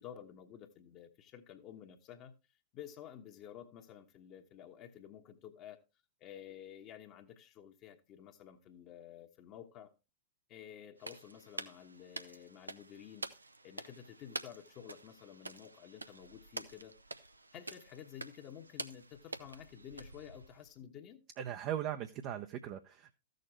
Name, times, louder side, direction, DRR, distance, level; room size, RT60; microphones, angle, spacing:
voice 1, 0.0-2.3 2.7-5.8 6.2-9.9 10.5-13.3 13.6-16.9 17.5-21.2, left 9 dB, 35° left, 1.1 m, -52 dB
sound 1, 11.0-20.7, right 2 dB, 80° right, 0.7 m, -48 dB
voice 2, 21.4-23.1, right 10 dB, 35° right, 0.7 m, -39 dB
14.0 x 6.6 x 3.2 m
figure-of-eight pair, 100°, 0 cm